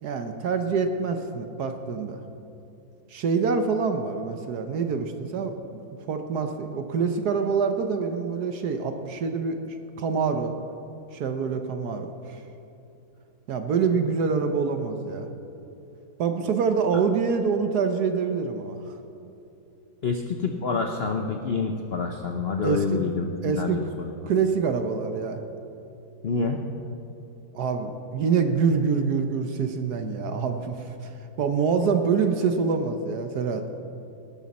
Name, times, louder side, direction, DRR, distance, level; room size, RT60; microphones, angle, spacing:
voice 1, 0.0-2.2 3.1-5.5 6.1-10.6 11.1-12.1 13.5-15.3 16.2-18.8 22.6-23.0 23.4-23.8 24.2-25.4 27.5-30.8 31.4-33.6, right 5 dB, 60° right, 7 dB, 1.2 m, -25 dB
voice 2, 20.0-24.1 26.2-26.6, left 4 dB, 70° left, 3 dB, 0.5 m, -27 dB
19.0 x 11.5 x 4.2 m, 2.8 s
omnidirectional pair, 2.1 m